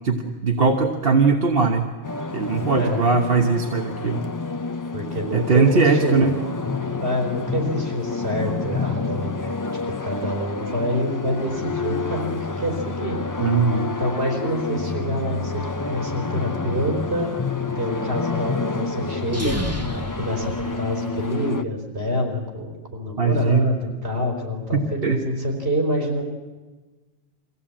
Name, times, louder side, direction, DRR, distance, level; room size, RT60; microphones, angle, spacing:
voice 1, 0.0-1.9 2.3-4.2 5.3-6.3 13.4-13.9 23.2-23.7 24.7-25.2, right 4 dB, 60° right, 2 dB, 1.5 m, -20 dB
sound 1, 2.0-21.6, left 4 dB, 25° left, 0.5 m, -29 dB
voice 2, 4.9-6.3 7.0-9.6 10.0-13.2 14.0-17.3 17.7-19.6 20.1-26.2, equal, 80° right, 1 dB, 4.5 m, -26 dB
sound 2, 19.2-21.4, equal, 15° right, 1.4 m, -31 dB
24.0 x 16.0 x 8.8 m, 1.3 s
omnidirectional pair, 1.1 m